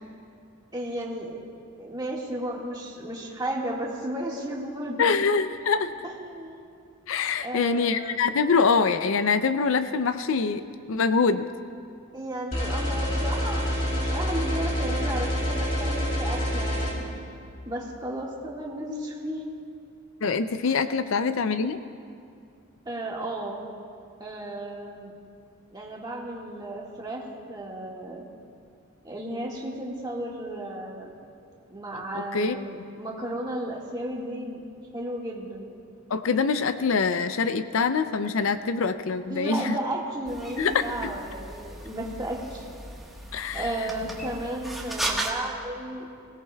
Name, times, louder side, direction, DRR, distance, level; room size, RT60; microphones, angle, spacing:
voice 1, 0.7-1.4 1.8-5.1 6.0-6.6 7.4-8.2 12.1-17.1 17.6-19.5 20.6-21.0 22.8-23.6 24.2-25.1 25.7-27.2 27.5-28.2 29.0-31.1 31.7-34.6 34.9-35.7 39.3-42.6 43.5-46.1, right 1 dB, 20° right, -3 dB, 1.7 m, -34 dB
voice 2, 5.0-5.9 7.1-10.6 10.9-11.5 20.2-21.8 32.1-32.6 36.1-39.8 40.6-41.1 43.3-43.9, left 5 dB, 65° left, 11 dB, 0.5 m, -24 dB
sound 1, 12.5-16.9, equal, 40° left, 3.5 m, -27 dB
sound 2, 40.3-45.3, right 1 dB, ahead, 1.4 m, -36 dB
22.0 x 17.5 x 2.3 m, 2.4 s
head